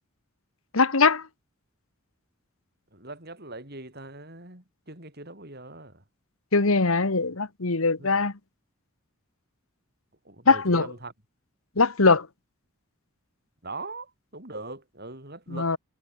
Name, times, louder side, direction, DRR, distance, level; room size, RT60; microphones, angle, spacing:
voice 1, 0.7-1.2 6.5-8.3 10.5-10.9 11.8-12.3 15.5-15.8, left 4 dB, 75° left, 1.6 m, -21 dB
voice 2, 2.9-6.0 8.0-8.1 10.2-11.1 13.6-15.7, right 2 dB, 50° right, 6.8 m, -41 dB
head